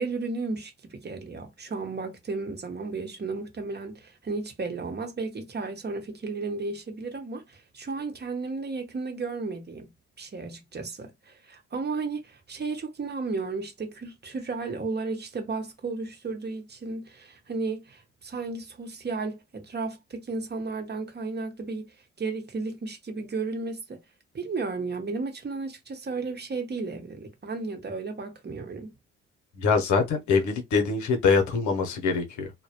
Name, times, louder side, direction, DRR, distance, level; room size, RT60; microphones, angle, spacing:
voice 1, 0.0-9.9 10.2-24.0 24.3-28.9, right 3 dB, 35° right, 0.9 m, -34 dB
voice 2, 29.5-32.5, left 5 dB, 70° left, 0.8 m, -24 dB
2.1 x 2.1 x 2.9 m
hypercardioid pair, 50°, 31 cm